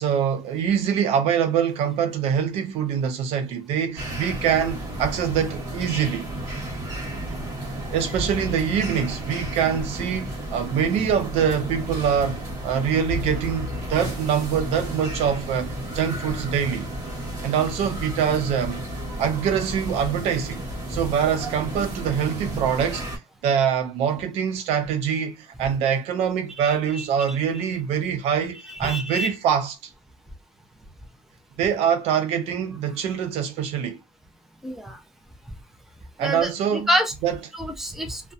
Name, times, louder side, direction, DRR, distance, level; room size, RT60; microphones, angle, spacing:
voice 1, 0.0-6.2 7.9-16.9 17.4-18.8 19.2-20.6 20.9-23.0 23.4-29.9 31.6-34.0 36.2-37.5, right 8 dB, 80° right, 0.6 m, -24 dB
sound 1, 4.0-23.2, right 1 dB, 30° right, 1.2 m, -32 dB
voice 2, 28.7-29.3 34.6-35.0 36.2-37.1 37.5-38.3, equal, 5° right, 0.5 m, -27 dB
2.6 x 2.1 x 2.3 m
cardioid pair, 145°, 10 cm